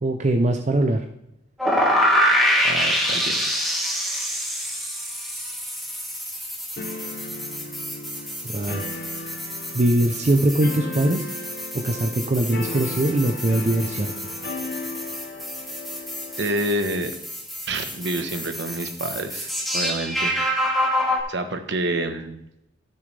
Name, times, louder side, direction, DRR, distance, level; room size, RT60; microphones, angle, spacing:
voice 1, 0.0-1.0 8.5-8.8 9.7-11.3 11.8-14.1, right 1 dB, 40° right, 5 dB, 0.6 m, -21 dB
sound 1, 1.6-21.2, equal, ahead, 1.8 m, -27 dB
voice 2, 2.6-3.9 16.4-17.1 17.7-20.3 21.3-22.3, right 1 dB, 65° right, 7 dB, 1.2 m, -28 dB
sound 2, 6.8-16.8, left 2 dB, 60° left, 0.9 m, -36 dB
15.0 x 6.7 x 3.4 m, 0.80 s
head